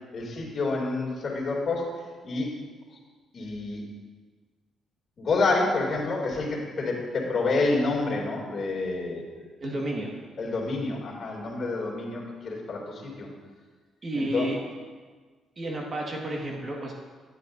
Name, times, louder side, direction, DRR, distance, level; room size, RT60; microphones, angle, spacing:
voice 1, 0.1-1.9 2.2-2.5 3.3-3.8 5.2-9.5 10.4-13.3 14.2-14.5, left 3 dB, 45° left, -3 dB, 2.6 m, -28 dB
voice 2, 9.6-10.1 14.0-14.6 15.6-16.9, right 1 dB, 40° right, -1 dB, 1.7 m, -31 dB
9.8 x 8.3 x 2.7 m, 1.4 s
cardioid pair, 90°, 0 cm